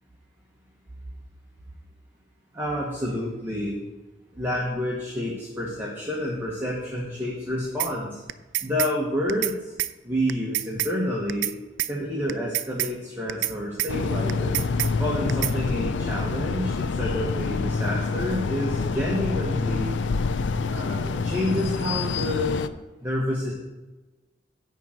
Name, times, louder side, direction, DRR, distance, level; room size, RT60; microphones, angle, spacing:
voice 1, 2.5-3.8 4.3-8.2 8.6-9.7 10.0-11.5 11.9-14.6 15.0-20.0 20.7-22.6 23.0-23.5, left 1 dB, 10° right, -5 dB, 1.2 m, -29 dB
sound 1, 7.8-7.9 8.3-8.9 9.3-9.5 9.8-9.9 10.3-10.9 11.3-11.5 11.8-11.9 12.3-12.9 13.3-13.5 13.8-13.9 14.3-14.9 15.3-15.5, right 15 dB, 85° right, 0.4 m, -27 dB
sound 2, 13.9-22.7, left 4 dB, 75° left, 0.4 m, -27 dB
10.5 x 3.8 x 7.5 m, 1.1 s
head